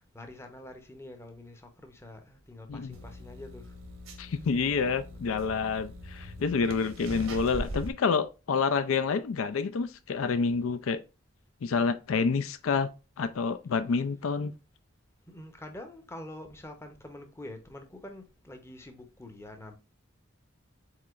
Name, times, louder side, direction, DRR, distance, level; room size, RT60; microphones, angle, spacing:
voice 1, 0.0-3.7 4.1-4.4 5.0-5.2 15.3-19.8, left 1 dB, 10° left, 0.7 m, -46 dB
sound 1, 2.9-7.9, equal, 80° right, 1.1 m, -41 dB
voice 2, 4.2-11.0 11.6-12.9 13.2-14.5, left 5 dB, 80° left, 0.4 m, -28 dB
4.7 x 4.1 x 2.4 m
head